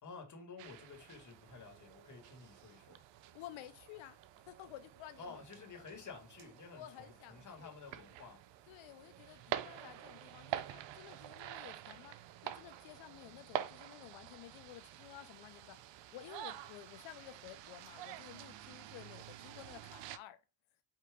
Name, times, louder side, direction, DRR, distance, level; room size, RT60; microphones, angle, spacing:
voice 1, 0.0-3.0 5.2-8.4, left 4 dB, 35° left, 1.8 m, -52 dB
sound 1, 0.6-20.2, right 12 dB, 65° right, 0.6 m, -47 dB
voice 2, 3.3-4.2 4.5-5.4 5.7-5.8 6.7-7.7 8.7-12.2 12.4-15.8 16.1-20.4, left 13 dB, 70° left, 0.6 m, -53 dB
4.7 x 2.9 x 3.4 m
supercardioid pair, 75°, 49 cm